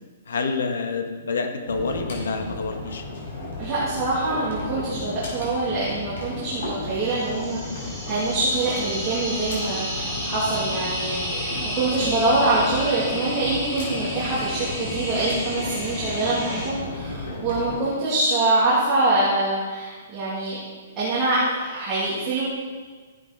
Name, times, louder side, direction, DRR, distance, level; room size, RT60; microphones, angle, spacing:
voice 1, 0.3-3.0 10.1-10.5, left 4 dB, 85° left, 5 dB, 1.7 m, -28 dB
sound 1, 1.7-17.8, left 2 dB, 50° left, 4.8 m, -34 dB
voice 2, 3.6-20.6 21.0-22.4, right 2 dB, 15° right, -9 dB, 2.7 m, -24 dB
sound 2, 7.0-16.7, equal, 5° left, 2.3 m, -32 dB
14.5 x 10.5 x 4.1 m, 1.4 s
hypercardioid pair, 180°, 0 cm